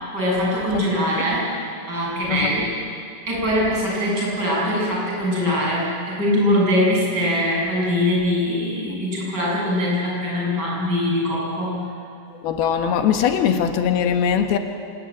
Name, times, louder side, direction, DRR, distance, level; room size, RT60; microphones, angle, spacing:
voice 1, 0.1-1.5 1.9-2.7 3.3-11.8, left 1 dB, 25° right, -4 dB, 7.8 m, -22 dB
voice 2, 12.4-14.6, left 8 dB, 90° left, 6 dB, 3.2 m, -20 dB
26.0 x 18.0 x 9.5 m, 2.4 s
omnidirectional pair, 4.3 m